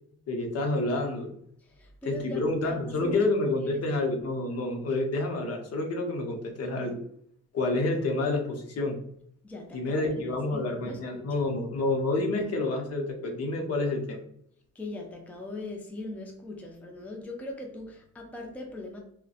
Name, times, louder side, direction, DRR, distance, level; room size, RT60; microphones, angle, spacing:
voice 1, 0.3-1.3 2.0-7.0 7.5-8.9 9.7-14.2, left 2 dB, 55° left, 2 dB, 0.7 m, -28 dB
voice 2, 1.8-3.2 9.4-11.5 14.8-19.0, left 2 dB, 5° left, 1 dB, 0.5 m, -40 dB
2.6 x 2.1 x 2.4 m, 0.69 s
cardioid pair, 90°, 30 cm